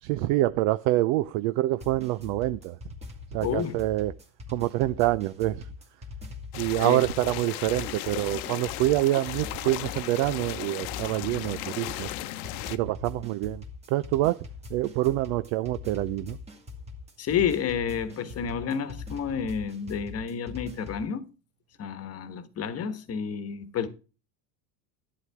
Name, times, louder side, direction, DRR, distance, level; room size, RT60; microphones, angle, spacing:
voice 1, 0.0-2.8 3.3-4.1 4.5-5.7 6.6-12.1 12.7-16.4, right 16 dB, 60° right, 0.6 m, -26 dB
sound 1, 1.8-21.1, left 4 dB, 15° right, 2.0 m, -42 dB
voice 2, 3.4-3.8 6.8-7.0 17.2-21.2 21.8-23.9, left 7 dB, 30° left, 1.3 m, -30 dB
sound 2, 6.5-12.8, left 15 dB, 65° left, 0.9 m, -36 dB
11.0 x 9.4 x 3.5 m
supercardioid pair, 120°, 47 cm